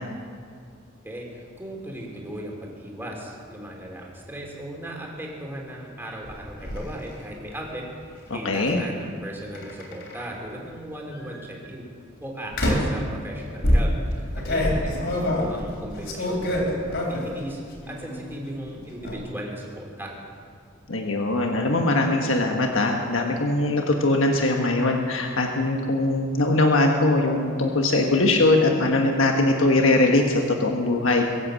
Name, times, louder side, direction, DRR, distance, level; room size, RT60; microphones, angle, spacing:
voice 1, 1.0-11.8 12.2-17.6 17.9-20.1, right 1 dB, 10° right, -1 dB, 3.0 m, -37 dB
sound 1, 6.2-6.8 8.5-8.8 9.5-10.4 11.1-11.4 12.5-13.0 13.6-17.4 17.7-18.3 18.6-19.2, left 1 dB, 60° left, 3.4 m, -25 dB
voice 2, 8.3-8.8 20.9-31.2, left 2 dB, 80° left, 2 dB, 1.4 m, -21 dB
22.5 x 8.3 x 7.5 m, 2.2 s
head